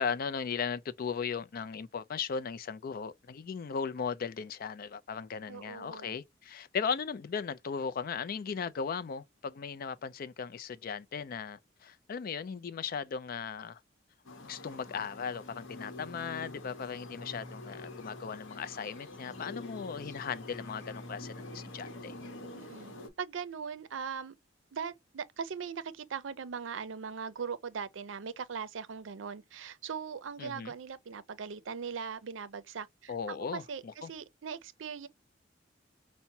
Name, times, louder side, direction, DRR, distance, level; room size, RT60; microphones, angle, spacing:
voice 1, 0.0-13.8 14.4-22.1 30.4-30.7 33.1-34.1, left 6 dB, 50° left, 0.4 m, -37 dB
voice 2, 5.5-6.2 22.5-22.9 23.2-24.4 24.7-35.1, right 6 dB, 85° right, 0.5 m, -40 dB
sound 1, 14.3-23.1, left 2 dB, 85° left, 0.9 m, -46 dB
5.7 x 2.1 x 2.6 m
head